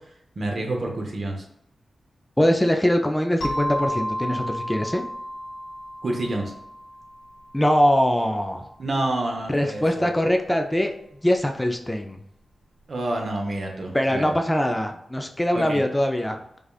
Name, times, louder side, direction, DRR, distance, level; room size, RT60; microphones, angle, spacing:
voice 1, 0.4-1.4 6.0-6.5 8.8-10.1 12.9-14.3 15.5-15.8, right 2 dB, 60° right, 1 dB, 0.8 m, -28 dB
voice 2, 2.4-5.0 7.5-8.7 9.5-10.9 11.2-12.2 13.9-16.4, equal, 10° left, 4 dB, 0.4 m, -22 dB
sound 1, 3.4-7.8, equal, 85° left, 1.0 m, -32 dB
4.9 x 2.4 x 2.4 m, 0.75 s
cardioid pair, 50°, 0 cm